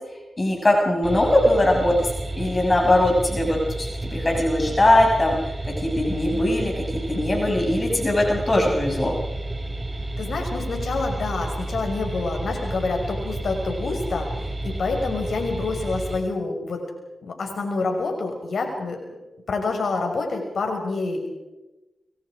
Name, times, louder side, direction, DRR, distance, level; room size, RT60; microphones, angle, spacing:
voice 1, 0.4-2.1 2.3-5.4 5.8-9.1, left 1 dB, 35° left, 1 dB, 6.4 m, -20 dB
sound 1, 1.0-16.2, right 1 dB, 30° right, 5.4 m, -31 dB
voice 2, 10.2-16.8 17.2-19.0 19.5-21.3, left 3 dB, 70° left, 3 dB, 6.0 m, -27 dB
28.0 x 23.5 x 5.1 m, 1.0 s
cardioid pair, 55°, 0 cm